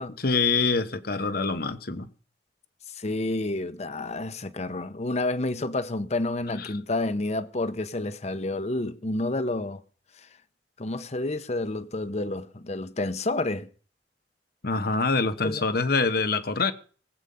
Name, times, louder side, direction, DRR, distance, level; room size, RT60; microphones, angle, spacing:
voice 1, 0.2-2.1 6.6-6.7 14.6-16.7, left 4 dB, 60° left, 1.1 m, -25 dB
voice 2, 2.9-9.8 10.8-13.7 15.4-15.6, left 2 dB, 40° left, 0.8 m, -29 dB
19.5 x 8.1 x 5.5 m
head